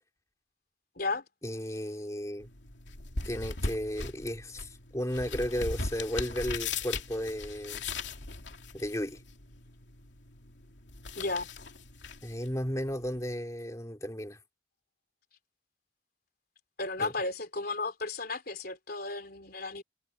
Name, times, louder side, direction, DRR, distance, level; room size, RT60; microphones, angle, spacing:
voice 1, 1.4-2.5 3.2-7.8 8.7-9.2 12.2-14.4 17.0-17.1, equal, 20° left, 2.9 m, -34 dB
sound 1, 2.4-13.4, left 3 dB, 80° left, 2.7 m, -39 dB
voice 2, 11.2-11.5 16.8-19.8, left 3 dB, 55° left, 3.8 m, -34 dB
head